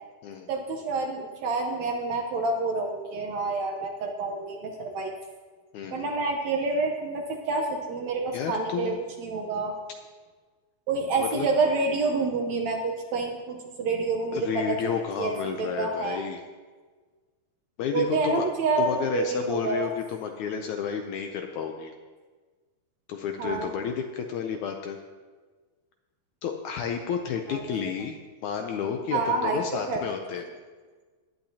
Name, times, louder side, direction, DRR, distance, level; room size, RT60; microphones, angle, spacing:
voice 1, 0.5-5.2 5.9-9.8 10.9-14.9 15.2-16.3 17.9-19.9 23.4-23.7 27.5-27.8 29.1-30.0, right 3 dB, 70° right, 2 dB, 1.9 m, -28 dB
voice 2, 5.7-6.1 8.3-9.0 11.2-11.5 14.3-16.4 17.8-18.4 18.8-21.9 23.1-25.0 26.4-28.2 28.4-30.4, left 7 dB, 75° left, 4 dB, 1.8 m, -31 dB
19.0 x 11.0 x 2.8 m, 1.4 s
omnidirectional pair, 4.0 m